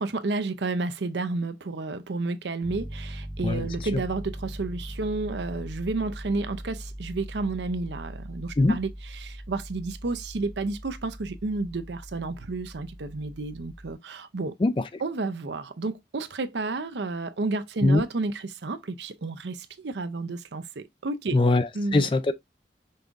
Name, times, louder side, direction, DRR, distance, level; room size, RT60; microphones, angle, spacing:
voice 1, 0.0-14.5 15.0-21.4 21.7-22.1, right 3 dB, 85° right, 0.6 m, -31 dB
Piano, 2.6-13.9, equal, 25° right, 1.1 m, -40 dB
voice 2, 21.3-22.3, left 2 dB, 30° left, 0.4 m, -21 dB
5.5 x 2.6 x 3.5 m
head